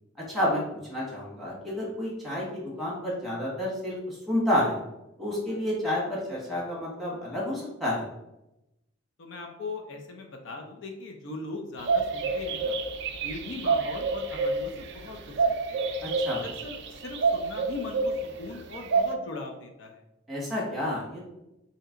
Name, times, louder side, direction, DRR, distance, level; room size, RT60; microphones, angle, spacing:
voice 1, 0.3-0.6 0.9-4.8 5.2-8.0 16.0-16.4 20.3-21.3, left 1 dB, ahead, -6 dB, 1.2 m, -30 dB
voice 2, 9.2-12.8 13.2-15.9 16.4-20.0, left 3 dB, 70° left, 3 dB, 0.5 m, -40 dB
sound 1, 11.8-19.1, right 4 dB, 60° right, 0.3 m, -28 dB
3.2 x 2.8 x 3.6 m, 0.91 s
head